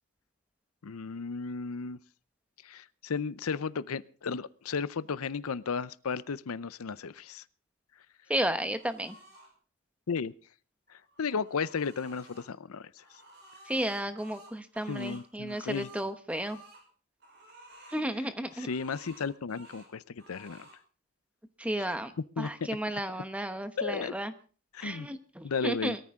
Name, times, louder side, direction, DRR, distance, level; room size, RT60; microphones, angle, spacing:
voice 1, 0.8-2.0 2.6-7.4 10.1-10.3 11.2-12.9 14.9-15.9 18.6-20.7 21.8-21.9 22.4-22.5 23.8-24.1 24.7-25.1 25.4-26.0, left 5 dB, 85° left, 17 dB, 0.6 m, -34 dB
voice 2, 8.3-9.1 13.7-16.6 17.9-18.7 21.6-22.1 22.4-24.3 24.8-26.0, right 1 dB, 5° right, 9 dB, 1.0 m, -33 dB
sound 1, 8.7-9.5 10.9-12.5 13.0-16.8 17.2-18.1 18.4-19.9 20.2-20.8, right 1 dB, 50° right, 5.7 m, -54 dB
21.5 x 14.0 x 3.7 m, 0.40 s
head